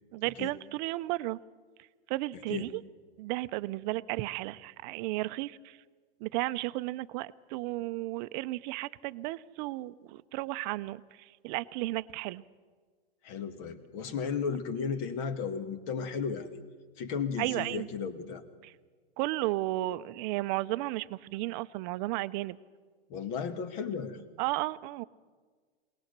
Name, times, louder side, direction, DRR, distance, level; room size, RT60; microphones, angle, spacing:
voice 1, 0.1-1.4 2.1-2.8 3.2-5.8 6.2-12.4 17.4-17.9 18.6-18.7 19.2-22.6 24.4-25.0, right 18 dB, 45° right, 14 dB, 0.7 m, -34 dB
voice 2, 13.2-16.6 17.0-18.4 23.1-24.2, left 6 dB, 45° left, 8 dB, 2.0 m, -34 dB
22.0 x 19.5 x 6.7 m, 1.5 s
hypercardioid pair, 120°, 33 cm